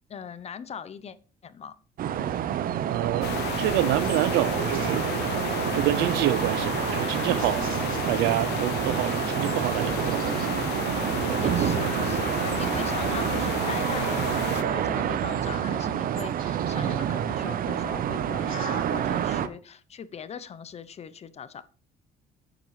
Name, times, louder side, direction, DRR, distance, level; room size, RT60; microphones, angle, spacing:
voice 1, 0.1-1.2 1.4-1.7 11.3-21.6, left 7 dB, 40° left, 0.8 m, -40 dB
sound 1, 2.0-19.5, right 10 dB, 60° right, 0.8 m, -28 dB
voice 2, 2.9-5.1 5.4-7.7 8.1-10.4 11.3-11.5, right 15 dB, 90° right, 0.5 m, -27 dB
sound 2, 3.2-14.6, left 14 dB, 80° left, 0.6 m, -33 dB
12.0 x 9.1 x 3.2 m
cardioid pair, 110°, 17 cm